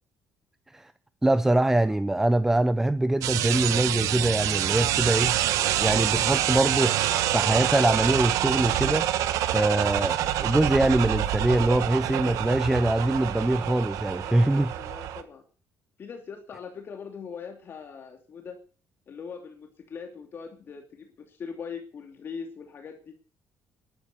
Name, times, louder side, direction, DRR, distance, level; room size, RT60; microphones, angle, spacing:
voice 1, 1.2-5.3 5.8-7.0 7.3-9.1 9.5-14.7, right 1 dB, 5° right, 0.6 m, -23 dB
sound 1, 3.2-15.2, right 12 dB, 80° right, 1.4 m, -26 dB
voice 2, 14.2-15.4 16.0-18.6 19.1-23.1, left 6 dB, 40° left, 2.7 m, -41 dB
13.5 x 12.0 x 6.7 m
cardioid pair, 125°, 6 cm